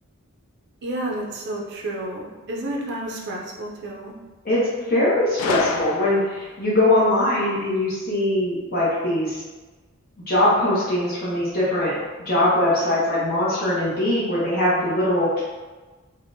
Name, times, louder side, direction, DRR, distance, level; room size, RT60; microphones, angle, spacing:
voice 1, 0.8-4.1, right 1 dB, 50° right, -2 dB, 0.5 m, -30 dB
voice 2, 4.4-9.4 10.3-11.9 12.3-15.4, left 1 dB, 45° left, -8 dB, 0.8 m, -21 dB
Gunshot gunfire, 5.4-6.6, left 5 dB, 80° left, 0.3 m, -28 dB
3.4 x 2.1 x 2.5 m, 1.3 s
head